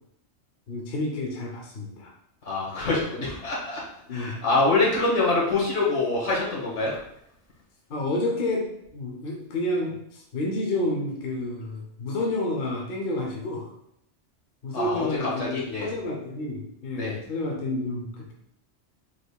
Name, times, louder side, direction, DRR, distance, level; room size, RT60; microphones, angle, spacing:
voice 1, 0.7-2.1 4.1-4.4 7.9-13.7 14.6-18.3, left 2 dB, 50° left, 0 dB, 0.9 m, -30 dB
voice 2, 2.5-3.8 4.1-7.0 14.7-15.9 17.0-17.2, left 3 dB, 80° left, -5 dB, 1.8 m, -25 dB
5.0 x 4.1 x 2.2 m, 0.75 s
omnidirectional pair, 1.3 m